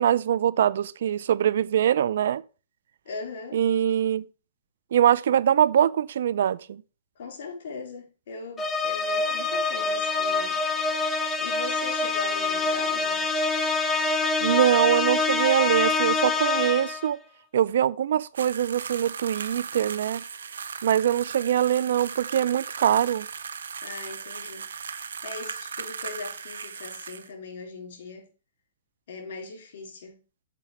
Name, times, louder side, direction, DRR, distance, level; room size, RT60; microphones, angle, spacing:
voice 1, 0.0-2.4 3.5-4.2 4.9-6.8 14.4-17.2 17.5-20.2 20.8-23.3, right 10 dB, 70° right, 0.4 m, -23 dB
voice 2, 3.1-3.6 7.2-10.6 11.4-13.2 23.8-24.7 24.9-28.3 29.1-30.2, left 4 dB, 60° left, 3.8 m, -39 dB
sound 1, 8.6-17.1, left 3 dB, 15° left, 0.9 m, -25 dB
sound 2, 18.4-27.3, right 6 dB, 85° right, 0.8 m, -37 dB
7.5 x 5.1 x 5.0 m
hypercardioid pair, 140°, 0 cm